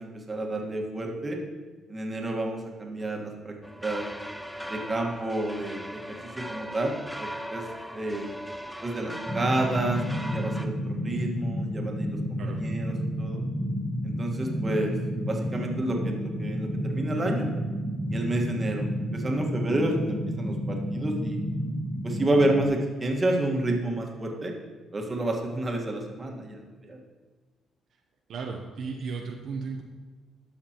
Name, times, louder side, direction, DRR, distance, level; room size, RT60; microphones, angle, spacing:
voice 1, 0.0-1.4 1.9-3.5 3.8-4.1 4.7-6.9 7.2-7.6 7.9-8.3 8.8-13.4 14.0-14.9 15.3-17.5 18.1-21.4 22.0-24.5 24.9-27.0, right 1 dB, 30° right, 0 dB, 1.4 m, -30 dB
sound 1, 3.6-10.7, equal, ahead, 0.5 m, -39 dB
sound 2, 9.2-22.7, equal, 15° left, 1.2 m, -31 dB
voice 2, 28.3-29.8, right 4 dB, 70° right, 1 dB, 0.7 m, -35 dB
13.0 x 5.9 x 2.9 m, 1.3 s
cardioid pair, 90°, 0 cm